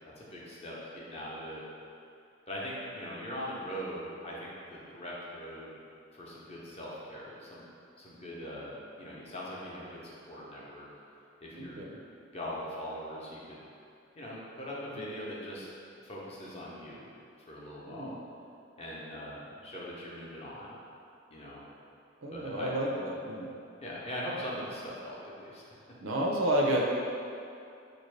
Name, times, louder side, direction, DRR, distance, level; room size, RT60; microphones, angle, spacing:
voice 1, 0.2-1.6 2.5-5.8 6.1-7.7 8.0-10.9 11.4-11.9 12.3-13.6 14.2-15.7 16.0-17.1 17.5-18.2 18.8-20.8 21.3-21.6 22.3-22.7 23.8-25.6, equal, 30° left, -5 dB, 0.6 m, -41 dB
voice 2, 11.6-12.0 17.9-18.2 22.2-23.5 26.0-26.8, right 1 dB, 80° right, -1 dB, 0.5 m, -30 dB
4.3 x 2.6 x 3.2 m, 2.5 s
head